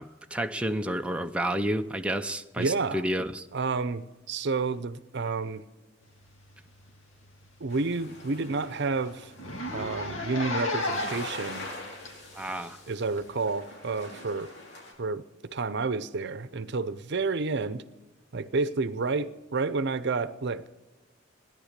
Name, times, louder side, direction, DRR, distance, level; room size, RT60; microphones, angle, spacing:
voice 1, 0.0-3.5 12.4-12.8, right 1 dB, 5° right, 6 dB, 0.6 m, -30 dB
voice 2, 2.6-3.0 3.5-5.6 7.6-9.3 9.7-11.7 12.9-14.5 15.0-15.2 15.5-17.8 18.3-20.7, right 4 dB, 60° right, 15 dB, 0.7 m, -30 dB
Zipper (clothing), 6.7-6.9 7.3-7.4 7.7-7.8 8.2-8.3 8.5-8.7 9.3-11.3 12.1-12.2 13.2-13.3, left 2 dB, 85° left, 2.8 m, -32 dB
sound 1, 7.7-14.9, left 2 dB, 60° left, 5.0 m, -44 dB
17.0 x 11.0 x 6.7 m, 1.2 s
head